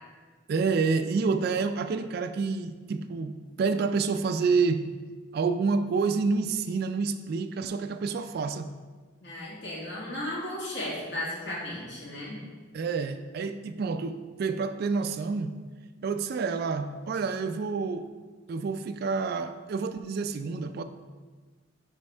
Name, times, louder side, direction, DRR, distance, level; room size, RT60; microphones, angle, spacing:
voice 1, 0.5-4.8 5.3-8.7 12.7-15.6 16.0-18.1 18.5-20.8, right 4 dB, 55° right, 10 dB, 0.3 m, -28 dB
voice 2, 9.2-12.4, left 1 dB, 65° left, -5 dB, 1.8 m, -35 dB
5.4 x 3.5 x 5.4 m, 1.4 s
head